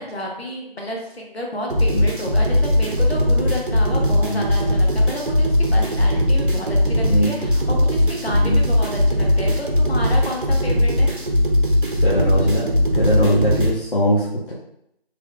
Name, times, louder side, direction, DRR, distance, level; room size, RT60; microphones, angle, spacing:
voice 1, 0.0-11.1, left 1 dB, 80° left, 0 dB, 1.1 m, -30 dB
sound 1, 1.7-13.7, left 1 dB, 55° right, 0.7 m, -19 dB
voice 2, 7.0-7.3 8.3-8.6 12.0-12.7 12.9-14.5, equal, 55° left, -6 dB, 0.7 m, -21 dB
3.5 x 3.2 x 2.2 m, 0.78 s
figure-of-eight pair, 180°, 31 cm